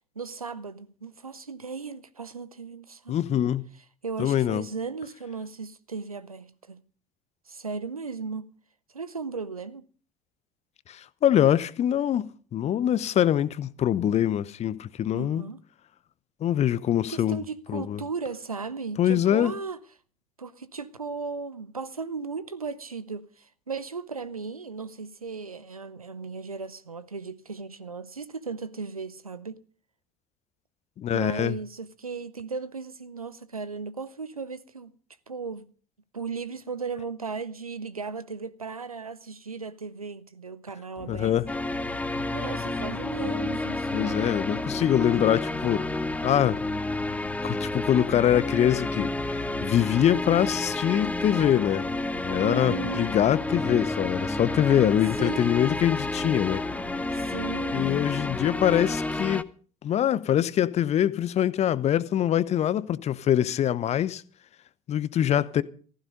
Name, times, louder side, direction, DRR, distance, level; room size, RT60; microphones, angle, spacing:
voice 1, 0.2-3.4 4.0-6.9 7.5-8.5 8.9-9.8 15.1-15.6 17.1-19.8 20.4-29.6 31.1-34.9 35.3-35.7 36.1-41.4 42.3-44.3 52.4-53.1 55.2-55.5 57.1-57.9, right 4 dB, 85° right, 0.7 m, -36 dB
voice 2, 3.1-3.7 4.2-4.7 10.9-15.4 16.4-17.4 17.7-18.0 19.0-19.5 31.0-31.6 41.1-41.5 43.9-45.9 46.2-46.6 47.4-52.0 52.2-56.6 57.7-59.5 59.8-64.2 64.9-65.6, left 10 dB, 35° left, 0.9 m, -24 dB
sound 1, 41.0-59.4, left 6 dB, 50° left, 1.7 m, -42 dB
sound 2, 41.5-59.4, left 2 dB, 10° left, 0.7 m, -30 dB
15.5 x 15.0 x 5.2 m
figure-of-eight pair, 60°, 18 cm